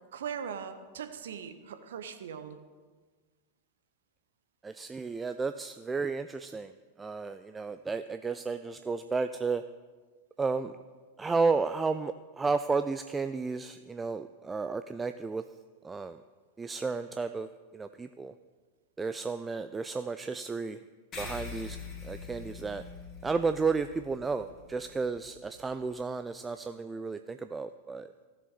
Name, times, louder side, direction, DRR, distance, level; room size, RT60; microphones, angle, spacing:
voice 1, 0.1-2.6, right 7 dB, 60° right, 9 dB, 0.8 m, -40 dB
voice 2, 4.6-6.7 7.0-9.6 10.4-10.7 11.2-15.4 15.8-16.2 16.6-18.3 19.0-20.8 21.2-21.8 22.0-22.8 23.2-28.1, right 4 dB, 15° right, 10 dB, 0.3 m, -32 dB
sound 1, 21.1-26.0, left 5 dB, 30° left, 1.8 m, -44 dB
15.0 x 6.8 x 4.1 m, 1.4 s
figure-of-eight pair, 90°, 0 cm